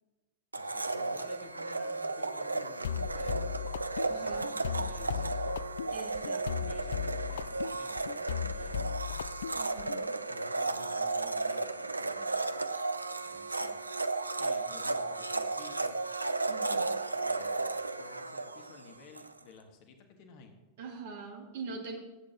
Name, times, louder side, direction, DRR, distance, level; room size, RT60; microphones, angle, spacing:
voice 1, 0.5-3.4 4.0-5.3 6.7-9.0 10.3-12.3 13.2-13.8 14.4-16.0 17.1-17.6 18.0-20.5, left 4 dB, 45° left, 6 dB, 1.5 m, -54 dB
Domestic sounds home sounds, 0.5-19.3, right 3 dB, 80° right, 0.5 m, -34 dB
sound 1, 2.8-10.0, left 9 dB, 65° left, 0.3 m, -37 dB
voice 2, 4.1-4.4 5.9-6.5 9.6-10.2 14.7-14.8 16.5-16.9 20.8-22.0, right 4 dB, 55° right, 1 dB, 2.4 m, -43 dB
18.5 x 8.8 x 2.9 m, 1.1 s
figure-of-eight pair, 90°, 0 cm